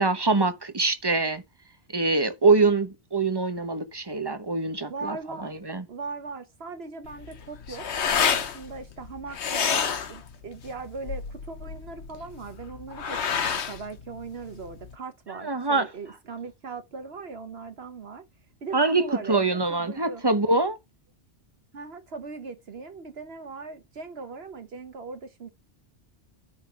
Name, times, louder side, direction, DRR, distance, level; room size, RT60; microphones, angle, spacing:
voice 1, 0.0-1.4 1.9-5.8 15.4-15.9 18.7-20.8, right 3 dB, 25° right, 0.9 m, -24 dB
voice 2, 4.8-5.6 5.9-7.9 8.2-18.2 18.6-20.2 21.7-25.5, right 4 dB, 65° right, 1.3 m, -39 dB
sound 1, 7.0-14.9, left 7 dB, 80° left, 1.2 m, -29 dB
9.8 x 3.9 x 5.8 m
omnidirectional pair, 1.1 m